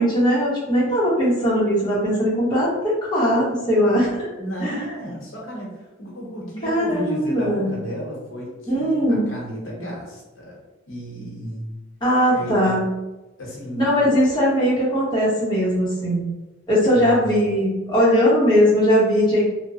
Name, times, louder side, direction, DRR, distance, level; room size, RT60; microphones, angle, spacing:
voice 1, 0.0-4.3 4.6-4.8 6.6-7.7 8.7-9.3 12.0-12.9 13.7-16.2 16.7-19.4, equal, 20° left, -8 dB, 0.8 m, -19 dB
voice 2, 4.4-10.6 10.9-11.7 12.3-12.7 13.4-13.9 16.9-17.6, equal, 80° left, -4 dB, 0.9 m, -33 dB
2.9 x 2.1 x 2.7 m, 1.1 s
head